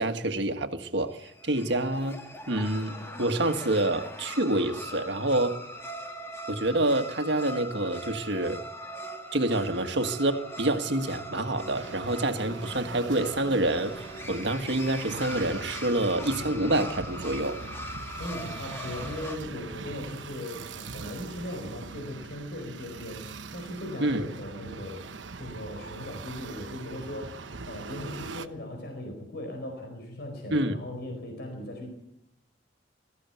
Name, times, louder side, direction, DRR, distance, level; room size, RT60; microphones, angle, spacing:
voice 1, 0.0-2.2 2.5-5.6 6.5-8.6 9.3-17.6 24.0-24.3 30.5-30.8, right 1 dB, 65° right, 1.6 m, -27 dB
sound 1, 1.1-19.4, equal, 15° left, 1.7 m, -41 dB
sound 2, 11.7-28.5, right 4 dB, 85° right, 1.0 m, -42 dB
voice 2, 18.2-25.0 25.4-31.9, left 1 dB, 60° left, 4.7 m, -38 dB
21.0 x 15.0 x 9.2 m
head